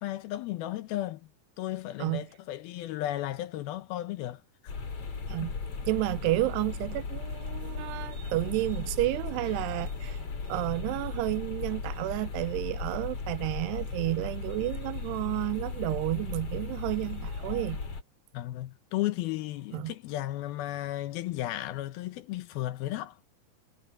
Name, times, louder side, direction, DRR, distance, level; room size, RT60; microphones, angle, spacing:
voice 1, 0.0-1.3 1.6-4.7 5.4-5.5 18.3-23.2, left 15 dB, 75° left, 2.5 m, -34 dB
sound 1, 4.7-18.0, left 4 dB, 35° left, 3.7 m, -36 dB
voice 2, 5.9-10.2 10.5-17.8 19.7-19.9, right 18 dB, 85° right, 2.7 m, -31 dB
omnidirectional pair, 4.8 m